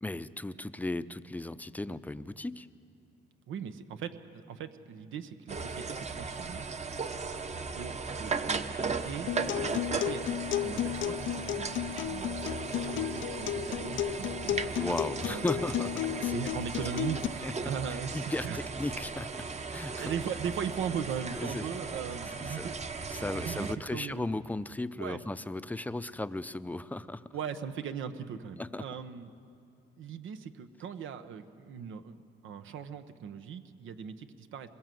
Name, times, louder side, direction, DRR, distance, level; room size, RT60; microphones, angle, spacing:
voice 1, 0.0-2.7 14.7-16.4 17.4-17.5 18.1-19.3 19.7-20.1 21.4-21.6 22.4-22.7 23.1-27.3 28.6-28.8, left 2 dB, 10° left, 13 dB, 0.7 m, -36 dB
voice 2, 3.5-6.7 7.7-12.4 12.7-14.8 15.3-15.5 16.2-18.6 19.4-19.7 20.0-22.7 23.4-24.3 25.0-25.2 27.3-29.3 30.0-32.2 32.4-34.7, right 7 dB, 80° right, 8 dB, 1.1 m, -39 dB
sound 1, 5.5-23.8, right 4 dB, 35° right, 1.1 m, -37 dB
Acoustic guitar, 9.3-17.3, left 12 dB, 75° left, 0.5 m, -34 dB
22.5 x 21.5 x 7.7 m, 2.6 s
cardioid pair, 90°, 20 cm